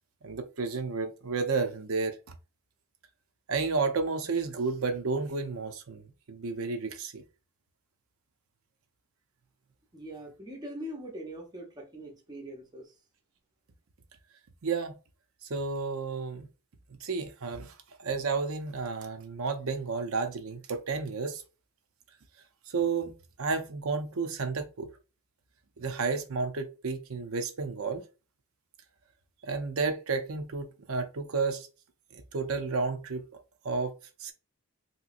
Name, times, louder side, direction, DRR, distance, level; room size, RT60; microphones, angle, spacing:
voice 1, 0.2-2.2 3.5-7.2 14.6-15.0 15.5-16.5 17.0-21.4 22.7-23.1 23.4-24.9 25.8-28.1 29.4-31.7 32.1-33.2 33.6-33.9 34.2-34.3, right 4 dB, 75° right, 0.6 m, -31 dB
voice 2, 9.9-13.0, equal, 20° right, 0.6 m, -42 dB
3.2 x 2.9 x 2.5 m
head